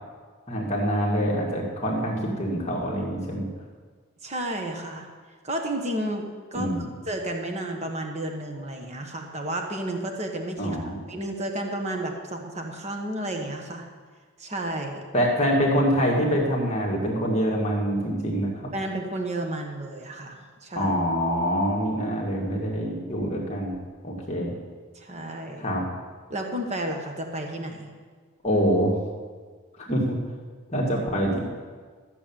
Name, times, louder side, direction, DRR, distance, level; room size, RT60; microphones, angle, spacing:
voice 1, 0.5-3.5 6.5-6.9 10.6-11.0 15.1-18.7 20.8-23.7 24.0-24.5 25.6-25.9 28.4-28.9 29.8-30.2 30.7-31.4, equal, 30° left, -2 dB, 2.0 m, -25 dB
voice 2, 4.2-5.1 5.4-6.2 6.5-6.8 7.1-10.8 11.1-13.8 14.4-15.0 18.7-20.9 24.9-25.7 26.3-27.9, right 1 dB, 30° right, 3 dB, 1.4 m, -32 dB
14.0 x 7.0 x 8.7 m, 1.5 s
head